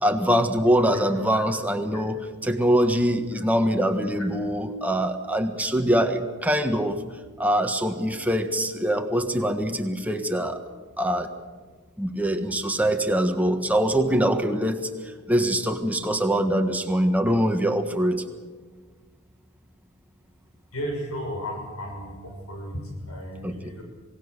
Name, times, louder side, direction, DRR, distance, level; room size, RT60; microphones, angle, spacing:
voice 1, 0.0-7.0 7.4-10.6 11.0-11.3 12.0-14.8 15.3-18.2 23.4-23.5, equal, 5° right, 5 dB, 1.5 m, -23 dB
voice 2, 20.7-23.8, equal, 80° left, 1 dB, 6.3 m, -34 dB
27.5 x 18.0 x 6.7 m, 1.4 s
head